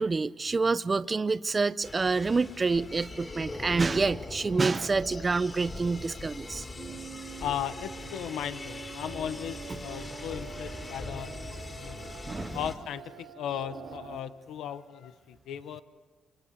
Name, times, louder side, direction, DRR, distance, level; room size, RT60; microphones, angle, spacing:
voice 1, 0.0-7.0 12.3-12.6, right 4 dB, 30° right, 0.7 m, -28 dB
sound 1, 1.8-12.8, left 2 dB, 30° left, 4.3 m, -41 dB
sound 2, 6.8-14.2, right 8 dB, 75° right, 2.4 m, -46 dB
voice 2, 7.4-12.1 12.5-15.8, left 9 dB, 80° left, 0.9 m, -37 dB
29.0 x 26.0 x 7.0 m
cardioid pair, 90°, 0 cm